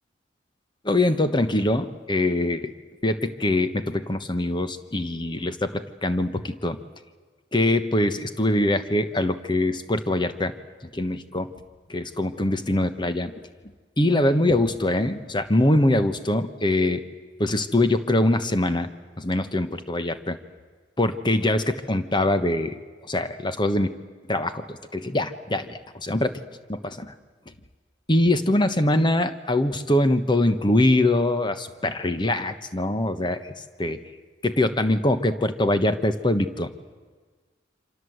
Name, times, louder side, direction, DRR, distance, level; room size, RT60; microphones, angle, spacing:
voice 1, 0.8-2.7 3.0-6.8 7.5-10.5 10.9-11.5 11.9-13.5 14.0-17.0 17.4-18.9 19.2-20.4 21.0-22.8 23.1-23.9 24.2-26.4 26.7-27.1 28.1-33.5 33.8-34.0 34.4-36.7, left 1 dB, 25° left, 10 dB, 1.2 m, -23 dB
27.5 x 26.0 x 8.0 m, 1.4 s
head